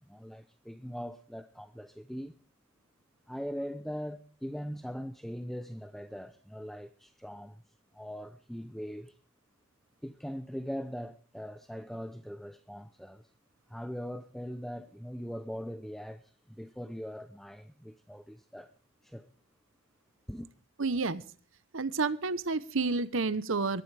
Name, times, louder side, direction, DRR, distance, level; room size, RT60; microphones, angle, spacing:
voice 1, 0.0-2.3 3.3-7.6 7.9-9.2 10.0-13.3 13.7-18.7 19.0-19.3 20.3-20.5, equal, ahead, 0.6 m, -41 dB
voice 2, 20.8-21.2 21.7-23.8, right 4 dB, 70° right, 0.9 m, -30 dB
22.0 x 13.5 x 3.4 m
head